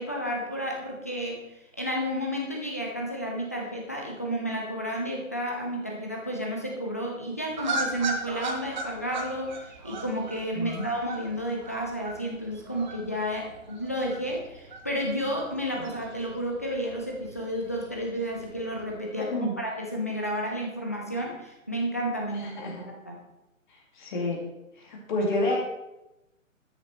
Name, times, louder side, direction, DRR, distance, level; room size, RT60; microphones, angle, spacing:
voice 1, 0.0-1.4 1.8-22.6 22.9-23.2, equal, 10° left, -1 dB, 0.4 m, -31 dB
sound 1, 7.5-19.0, right 2 dB, 35° right, 1.1 m, -38 dB
voice 2, 10.5-10.9 15.8-15.9 19.3-19.5 22.3-22.9 24.0-24.4 24.9-25.6, left 2 dB, 35° left, -1 dB, 2.3 m, -29 dB
13.0 x 6.6 x 3.2 m, 0.95 s
figure-of-eight pair, 135°, 40 cm